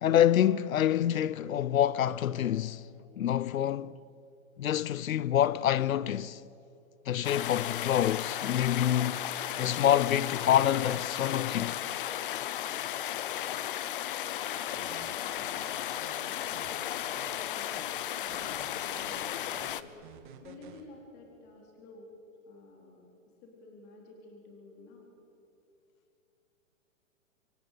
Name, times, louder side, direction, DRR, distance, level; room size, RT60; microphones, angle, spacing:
voice 1, 0.0-2.9 3.2-4.0 4.6-6.4 7.1-9.3 9.6-11.8, left 11 dB, 85° left, 0.9 m, -27 dB
sound 1, 7.2-19.8, left 11 dB, 40° left, 0.9 m, -35 dB
voice 2, 14.2-15.6 16.0-22.1 22.5-23.1 23.4-25.1, left 3 dB, 25° left, 4.0 m, -52 dB
sound 2, 14.4-16.1 16.5-17.5 17.7-17.9 18.3-20.8, right 8 dB, 35° right, 2.4 m, -51 dB
27.0 x 24.5 x 8.3 m
hypercardioid pair, 165°, 40 cm